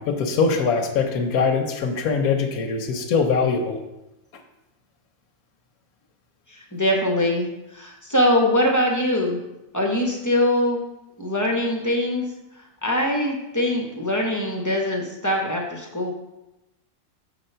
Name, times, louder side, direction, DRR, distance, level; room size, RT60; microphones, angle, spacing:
voice 1, 0.0-3.8, left 5 dB, 85° left, 3 dB, 1.2 m, -22 dB
voice 2, 6.5-7.5 7.7-9.4 9.7-10.8 11.2-12.2 12.8-16.1, left 1 dB, 15° left, 0 dB, 0.8 m, -22 dB
6.6 x 3.9 x 5.5 m, 0.94 s
omnidirectional pair, 1.5 m